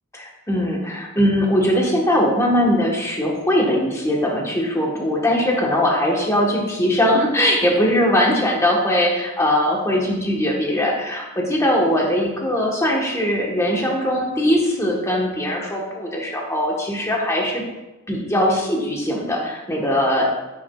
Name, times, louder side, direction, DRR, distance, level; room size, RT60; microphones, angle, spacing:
voice 1, 0.1-17.6 18.1-20.2, equal, 15° left, -2 dB, 1.1 m, -20 dB
10.0 x 6.1 x 2.3 m, 1.1 s
head